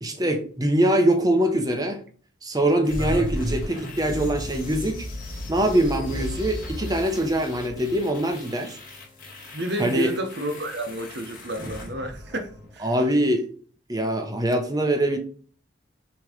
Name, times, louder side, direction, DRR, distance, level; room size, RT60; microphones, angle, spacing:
voice 1, 0.0-2.0 2.4-5.1 5.5-8.8 9.8-10.1 12.8-13.5 13.9-15.2, right 1 dB, 20° right, 0.8 m, -23 dB
sound 1, 2.8-12.8, left 1 dB, 45° left, 2.4 m, -35 dB
voice 2, 9.5-12.9, right 1 dB, 55° right, 1.1 m, -31 dB
6.2 x 3.1 x 5.0 m
head